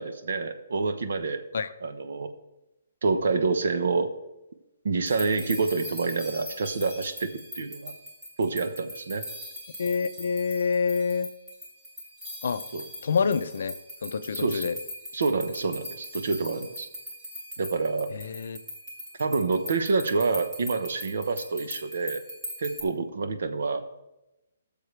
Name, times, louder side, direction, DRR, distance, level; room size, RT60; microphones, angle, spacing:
voice 1, 0.0-1.4 1.8-2.3 3.0-4.1 4.8-7.9 8.4-9.3 12.7-12.8 14.3-14.7 15.1-16.9 17.6-18.1 19.2-22.2 22.6-23.8, right 4 dB, 60° right, 9 dB, 1.0 m, -27 dB
sound 1, 5.1-22.8, equal, 5° right, 1.8 m, -41 dB
voice 2, 9.8-11.3 12.4-12.6 13.0-13.7 14.0-14.8 18.1-18.6, left 5 dB, 55° left, 11 dB, 0.6 m, -27 dB
19.5 x 6.7 x 3.3 m, 0.96 s
hypercardioid pair, 180°, 0 cm